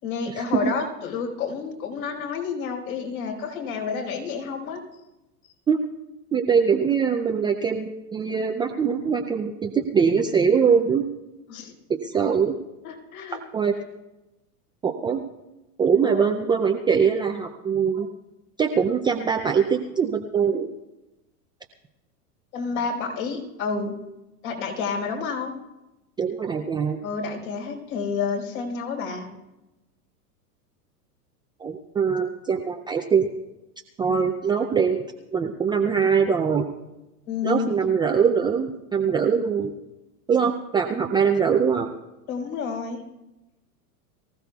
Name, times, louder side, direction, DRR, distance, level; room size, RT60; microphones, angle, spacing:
voice 1, 0.0-4.8 5.4-5.5 11.5-11.7 12.8-13.4 16.0-16.3 22.5-23.9 24.4-25.5 27.0-29.3 37.3-37.7 42.3-43.0, left 5 dB, 60° left, 0 dB, 4.7 m, -29 dB
voice 2, 6.3-11.1 11.9-12.6 13.5-13.8 14.8-15.2 15.8-18.1 18.6-20.7 26.2-27.0 31.6-33.3 34.0-35.0 35.3-36.6 37.4-39.7 40.3-41.9, right 6 dB, 10° right, 2 dB, 0.4 m, -22 dB
23.5 x 15.0 x 2.3 m, 1.0 s
hypercardioid pair, 115°, 47 cm